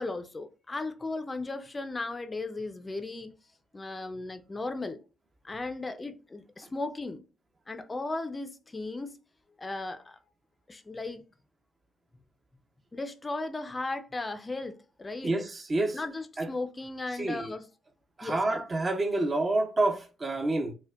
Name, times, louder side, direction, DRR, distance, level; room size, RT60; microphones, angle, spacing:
voice 1, 0.0-3.3 3.7-5.0 5.4-7.2 7.7-9.2 9.6-10.2 10.7-11.2 12.9-15.3 15.9-17.7 18.2-18.6, left 2 dB, 25° left, 0.4 m, -36 dB
voice 2, 15.2-16.0 16.4-16.5 17.2-17.5 18.2-20.7, right 2 dB, 30° right, 0.5 m, -28 dB
4.3 x 2.1 x 2.3 m
cardioid pair, 90°, 0 cm